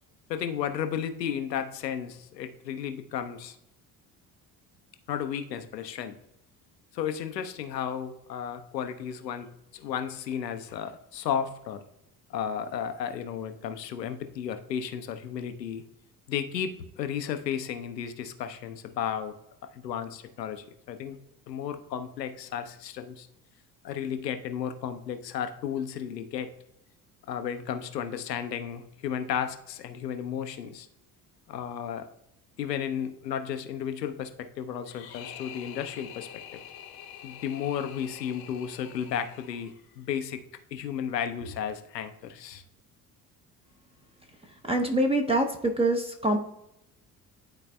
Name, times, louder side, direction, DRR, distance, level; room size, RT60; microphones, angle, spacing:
voice 1, 0.3-3.6 5.1-6.1 6.9-11.8 12.3-15.8 16.3-19.3 19.7-21.2 21.5-23.3 23.8-26.5 27.3-30.9 31.5-32.1 32.6-36.6 37.2-40.4 40.7-42.6, left 8 dB, 85° left, 9 dB, 0.6 m, -33 dB
sound 1, 34.9-40.0, left 10 dB, 50° left, 0.9 m, -46 dB
voice 2, 44.6-46.4, right 1 dB, 10° right, 3 dB, 0.7 m, -25 dB
11.0 x 4.1 x 2.2 m, 0.81 s
figure-of-eight pair, 55°, 48 cm